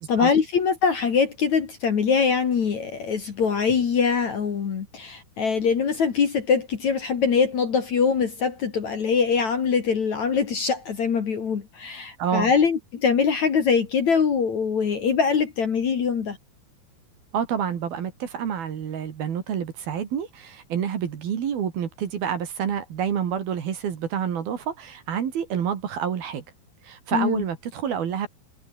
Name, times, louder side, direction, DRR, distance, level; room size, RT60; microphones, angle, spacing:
voice 1, 0.0-16.4 27.1-27.4, left 6 dB, 45° left, 3.0 m, -23 dB
voice 2, 12.2-12.5 17.3-26.4 26.8-28.3, right 8 dB, 60° right, 4.1 m, -28 dB
omnidirectional pair, 5.3 m